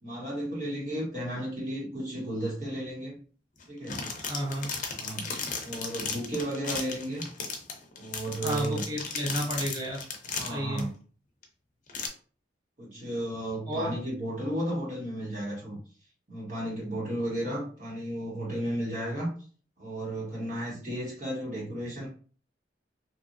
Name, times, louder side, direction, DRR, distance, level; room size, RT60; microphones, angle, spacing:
voice 1, 0.0-3.2 3.7-4.0 4.9-5.3 5.6-7.3 8.0-8.8 10.2-10.9 12.8-15.8 16.3-19.3 19.8-22.1, right 1 dB, 45° right, -5 dB, 1.4 m, -33 dB
sound 1, 3.6-10.8 11.4-11.5 11.9-12.1, left 5 dB, 45° left, 0.5 m, -35 dB
voice 2, 4.2-4.7 8.4-10.0 10.4-10.9 13.7-13.9, equal, 20° right, -3 dB, 0.7 m, -32 dB
2.8 x 2.6 x 2.6 m, 0.41 s
head